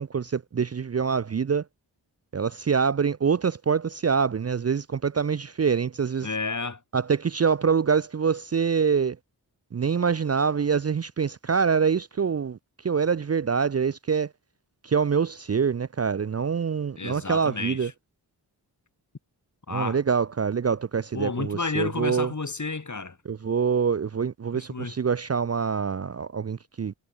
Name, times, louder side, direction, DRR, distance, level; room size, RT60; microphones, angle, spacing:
voice 1, 0.0-1.6 2.3-6.3 6.9-9.2 9.7-12.6 12.8-14.3 14.8-17.9 19.7-22.3 23.3-26.9, right 6 dB, 40° right, 0.6 m, -25 dB
voice 2, 6.2-6.8 17.0-17.9 19.7-20.0 21.1-23.2 24.5-24.9, left 3 dB, 45° left, 4.7 m, -31 dB
cardioid pair, 55°, 40 cm